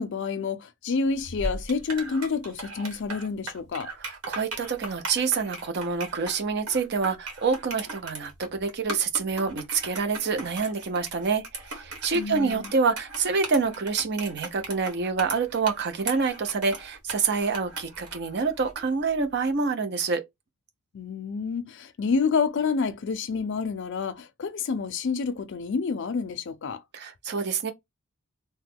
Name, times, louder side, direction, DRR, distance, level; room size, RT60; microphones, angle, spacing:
voice 1, 0.0-3.9 12.1-12.7 20.9-26.8, left 5 dB, 55° left, 0.4 m, -28 dB
sound 1, 1.1-18.9, right 2 dB, 80° right, 1.3 m, -38 dB
voice 2, 4.0-20.2 26.9-27.7, right 4 dB, 50° right, 0.6 m, -27 dB
2.9 x 2.1 x 3.5 m
head